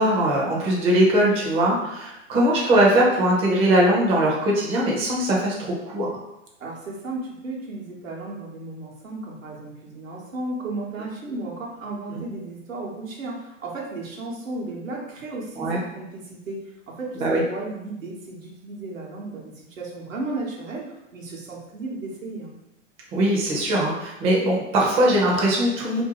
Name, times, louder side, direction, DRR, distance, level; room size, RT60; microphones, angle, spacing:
voice 1, 0.0-5.6 5.8-6.1 15.6-15.8 17.2-17.4 23.1-26.0, right 1 dB, 15° right, -3 dB, 0.4 m, -20 dB
voice 2, 6.6-22.5, right 2 dB, 90° right, -2 dB, 0.8 m, -34 dB
2.6 x 2.3 x 2.8 m, 0.89 s
hypercardioid pair, 115°, 38 cm